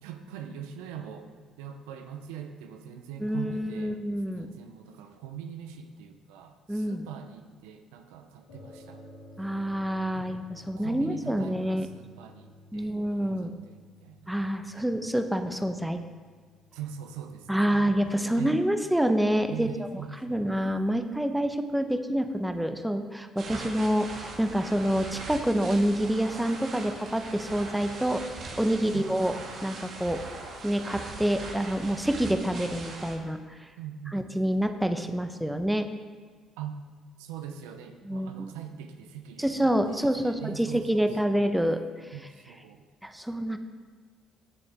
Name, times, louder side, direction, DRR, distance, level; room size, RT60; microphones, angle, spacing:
voice 1, 0.0-1.3 1.6-4.0 4.3-9.0 10.1-10.5 10.8-14.3 14.7-14.9 16.7-18.6 19.5-20.5 28.9-29.1 33.8-34.2 36.6-36.8 37.2-39.6 39.9-41.5 42.1-42.8, right 8 dB, 75° right, 6 dB, 0.8 m, -42 dB
voice 2, 3.2-4.5 6.7-7.0 9.4-11.9 12.7-13.5 14.3-16.0 17.5-19.9 20.2-29.3 29.6-30.2 30.6-33.7 34.1-35.9 38.1-38.5 39.4-41.8 43.0-43.6, equal, 5° right, 7 dB, 1.0 m, -27 dB
sound 1, 8.5-17.6, left 1 dB, 85° left, 3.1 m, -53 dB
sound 2, 23.4-33.2, right 3 dB, 55° right, 1.9 m, -40 dB
17.0 x 6.9 x 3.6 m, 1.5 s
hypercardioid pair, 50°, 0 cm